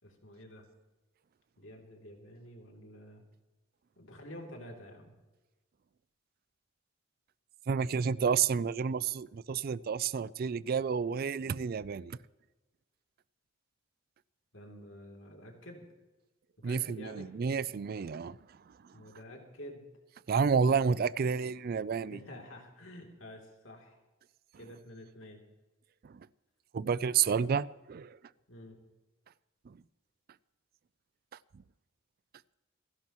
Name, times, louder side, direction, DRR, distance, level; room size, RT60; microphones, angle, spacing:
voice 1, 0.0-0.7 1.6-3.2 4.0-5.1 14.5-15.8 16.6-17.3 18.9-19.9 22.1-24.0 24.5-25.4 28.5-28.8, left 1 dB, 70° left, 3.0 m, -49 dB
voice 2, 7.7-12.2 16.6-18.4 20.3-22.2 26.0-26.2 26.7-28.2, right 6 dB, 50° right, 0.4 m, -30 dB
27.5 x 11.0 x 3.0 m
head